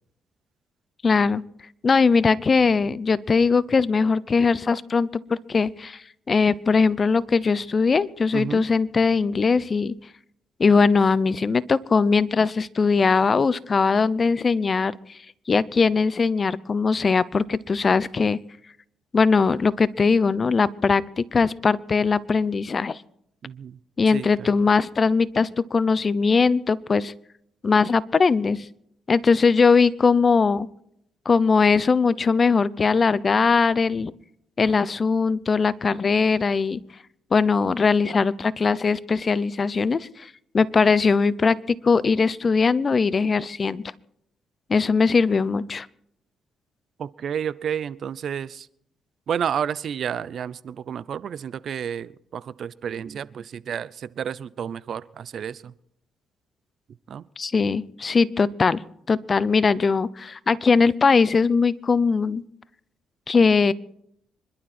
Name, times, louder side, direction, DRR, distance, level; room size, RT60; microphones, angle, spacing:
voice 1, 1.0-1.4 1.8-6.0 6.3-9.9 10.6-15.0 15.5-18.4 19.1-23.0 24.0-27.1 27.6-28.6 29.1-30.7 31.3-34.1 34.6-36.8 37.3-43.8 44.7-45.9 57.4-58.8 59.1-62.4 63.3-63.7, left 4 dB, 35° left, 19 dB, 0.7 m, -20 dB
voice 2, 8.3-8.6 23.4-23.8 24.1-24.5 47.0-48.7 49.3-55.7 57.1-57.2, right 8 dB, 60° right, 19 dB, 0.6 m, -31 dB
26.0 x 12.0 x 4.3 m, 0.73 s
cardioid pair, 90°, 0 cm